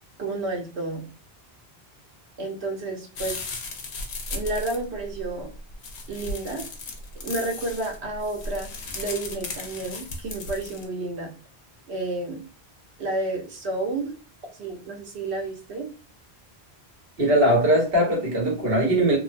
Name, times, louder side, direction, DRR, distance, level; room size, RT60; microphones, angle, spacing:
voice 1, 0.2-1.0 2.4-3.4 4.3-5.5 6.1-6.6 7.2-11.3 11.9-12.4 13.0-14.1 14.6-15.9, right 2 dB, 85° right, 1 dB, 1.1 m, -31 dB
sound 1, 3.2-10.8, left 2 dB, 90° left, 0.9 m, -36 dB
voice 2, 17.2-19.2, right 1 dB, 65° right, -3 dB, 1.4 m, -20 dB
2.9 x 2.0 x 2.5 m, 0.36 s
omnidirectional pair, 1.1 m